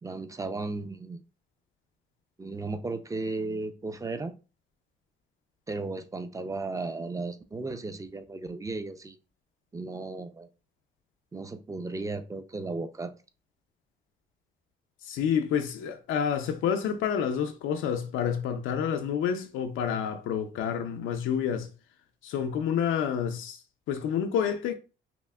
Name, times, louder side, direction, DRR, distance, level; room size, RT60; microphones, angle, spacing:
voice 1, 0.0-1.2 2.4-4.3 5.7-9.2 9.7-10.5 11.3-13.1, right 3 dB, 15° right, 0.4 m, -35 dB
voice 2, 15.0-21.7 22.2-23.6 23.9-24.7, left 8 dB, 85° left, 0.5 m, -29 dB
5.6 x 2.0 x 2.3 m
cardioid pair, 90°, 20 cm